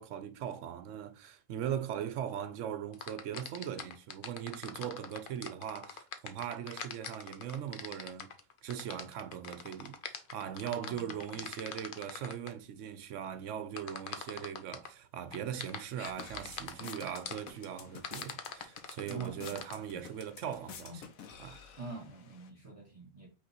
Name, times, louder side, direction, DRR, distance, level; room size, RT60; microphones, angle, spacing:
voice 1, 0.0-8.3 8.6-21.0 21.4-21.6, right 9 dB, 70° right, 0.9 m, -40 dB
sound 1, 2.9-12.5 13.8-14.9 15.3-17.5 18.0-19.7, left 6 dB, 50° left, 0.6 m, -43 dB
voice 2, 10.6-11.4 19.1-19.6 21.8-23.3, right 4 dB, 25° right, 1.5 m, -45 dB
sound 2, 15.6-22.5, left 6 dB, 75° left, 1.2 m, -51 dB
5.3 x 3.5 x 2.8 m
omnidirectional pair, 1.5 m